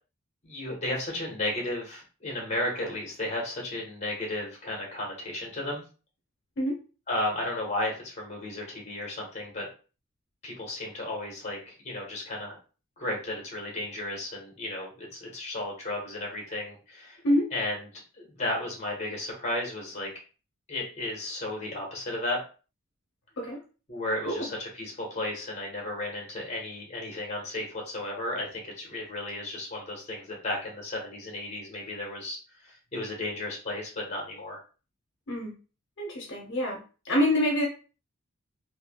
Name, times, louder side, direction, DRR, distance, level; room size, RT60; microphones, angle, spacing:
voice 1, 0.4-5.8 7.1-9.7 10.4-12.6 13.0-17.2 17.5-17.9 18.2-20.1 20.7-22.4 23.9-32.4 32.6-34.6, left 1 dB, 35° left, -2 dB, 1.1 m, -34 dB
voice 2, 36.0-36.8 37.0-37.6, left 1 dB, 60° left, -2 dB, 0.8 m, -26 dB
3.3 x 2.6 x 2.2 m, 0.35 s
head